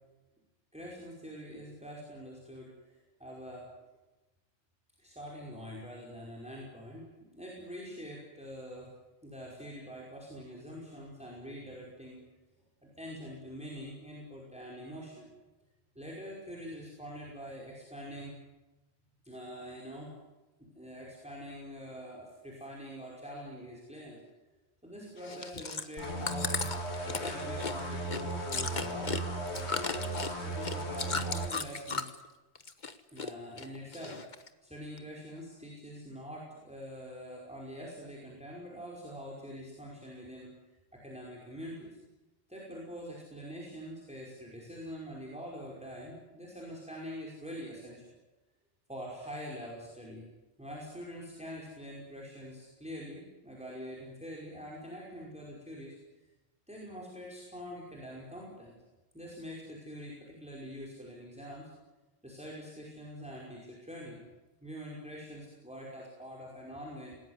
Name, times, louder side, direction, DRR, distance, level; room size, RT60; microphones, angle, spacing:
voice 1, 0.7-3.7 5.0-8.9 9.2-12.2 13.0-15.3 16.0-18.4 19.2-20.1 20.6-24.2 24.8-26.6 27.0-32.1 33.1-34.2 34.6-40.5 40.9-42.0 42.5-48.1 48.9-50.2 50.6-56.0 56.7-58.7 59.1-61.7 62.2-64.2 64.6-67.2, equal, 5° right, -3 dB, 5.4 m, -45 dB
Chewing mastication, 25.2-32.3 32.6-33.3 33.6-34.5 35.0-35.1, left 4 dB, 45° left, 1.4 m, -36 dB
sound 1, 26.0-31.5, right 2 dB, 80° left, 3.0 m, -36 dB
27.0 x 19.5 x 9.7 m, 1.1 s
omnidirectional pair, 1.1 m